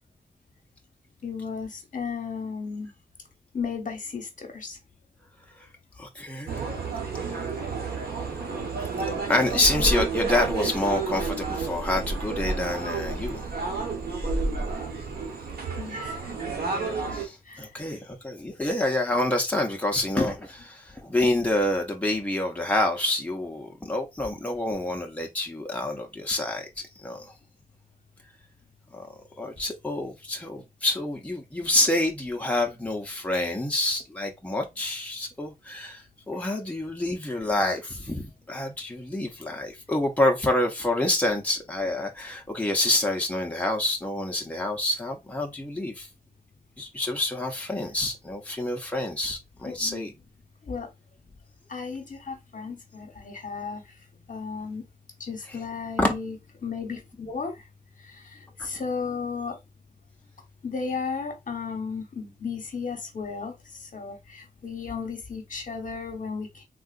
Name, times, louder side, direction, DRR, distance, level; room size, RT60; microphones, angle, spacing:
voice 1, 1.2-2.9 3.5-4.8 15.8-16.3 17.5-17.7 49.6-50.1 50.7-50.9 51.7-53.8 54.3-54.8 55.2-56.4 56.6-57.5 58.1-59.6 60.6-63.5 63.9-66.6, left 5 dB, 55° left, 0.9 m, -34 dB
voice 2, 6.0-6.7 9.3-13.5 17.1-26.7 27.0-27.3 28.9-29.1 29.4-46.1 46.8-50.1 55.5-55.6 56.0-56.2 58.6-58.7, left 1 dB, 10° left, 0.7 m, -27 dB
sound 1, 6.5-17.3, right 3 dB, 85° right, 1.0 m, -30 dB
3.7 x 2.4 x 2.4 m
wide cardioid pair, 80°, 16 cm